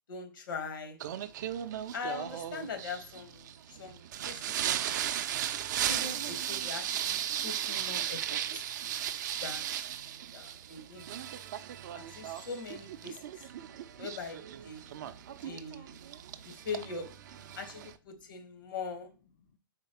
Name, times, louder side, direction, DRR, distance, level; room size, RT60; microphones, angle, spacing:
voice 1, 0.1-1.0 1.9-5.0 5.8-8.6 9.4-9.8 10.3-11.1 11.9-13.5 14.0-15.0 15.4-16.0 16.4-17.1 17.5-19.1, left 4 dB, 65° left, 1.2 m, -42 dB
Singing, 1.0-17.9, right 10 dB, 50° right, 0.4 m, -36 dB
voice 2, 13.5-13.9 14.8-15.5 15.9-16.5 17.5-17.6 18.6-18.7 19.4-19.6, left 6 dB, 45° left, 0.5 m, -68 dB
4.0 x 3.1 x 2.8 m
hypercardioid pair, 130°, 12 cm